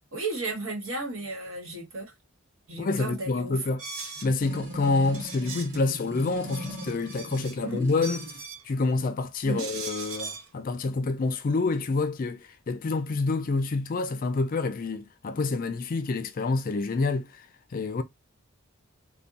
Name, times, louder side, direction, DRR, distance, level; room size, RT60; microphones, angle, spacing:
voice 1, 0.1-2.1 2.7-3.6 7.6-7.9 9.4-9.7, right 2 dB, 65° right, 1.7 m, -34 dB
voice 2, 2.8-8.2 8.7-12.4 12.7-17.3 17.7-18.0, left 3 dB, 40° left, 0.4 m, -27 dB
sound 1, 3.8-4.3 5.1-5.8 6.3-7.6 7.9-8.6 9.6-10.5, right 4 dB, 80° right, 0.7 m, -39 dB
sound 2, 4.4-8.4, equal, 40° right, 1.6 m, -39 dB
3.4 x 2.2 x 3.9 m
head